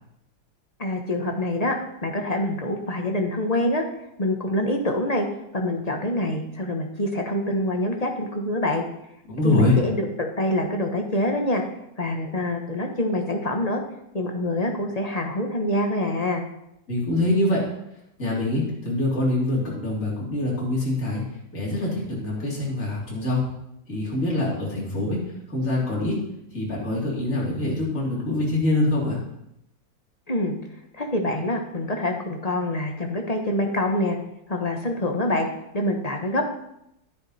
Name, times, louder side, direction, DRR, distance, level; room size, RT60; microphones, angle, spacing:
voice 1, 0.8-1.7 2.0-3.8 4.2-5.3 5.5-8.8 9.4-11.6 12.0-13.8 14.1-16.4 30.3-30.6 30.9-34.2 34.5-35.5 35.7-36.5, left 1 dB, 25° left, 3 dB, 1.0 m, -25 dB
voice 2, 9.3-9.8 16.9-17.7 18.2-21.2 21.5-23.4 23.9-25.2 25.5-26.2 26.5-29.2, left 2 dB, 40° left, -5 dB, 3.7 m, -24 dB
11.5 x 10.0 x 4.3 m, 0.81 s
omnidirectional pair, 2.2 m